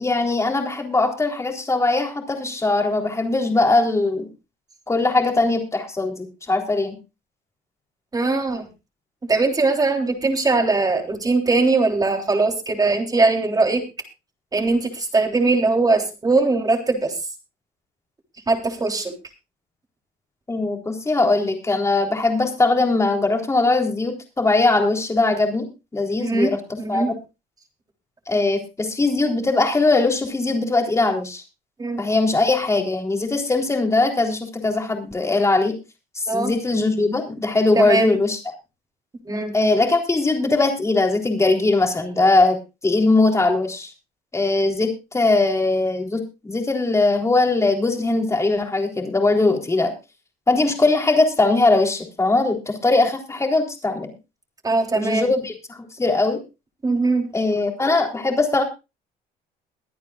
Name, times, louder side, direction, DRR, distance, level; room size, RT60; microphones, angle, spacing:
voice 1, 0.0-4.3 4.9-7.0 20.5-25.7 25.9-27.1 28.3-31.4 32.0-35.7 36.3-38.4 39.5-42.6 42.8-43.9 44.3-49.9 50.5-54.1 54.9-56.4 57.3-58.6, left 3 dB, 15° left, 2 dB, 3.7 m, -20 dB
voice 2, 8.1-8.6 9.3-13.8 14.5-17.1 18.5-19.1 26.2-26.5 26.8-27.1 31.8-32.0 36.3-36.5 37.8-38.1 39.3-39.5 54.6-55.3 56.8-57.3, right 3 dB, 20° right, 3 dB, 3.5 m, -20 dB
23.0 x 9.5 x 2.5 m, 0.27 s
cardioid pair, 110°, 17 cm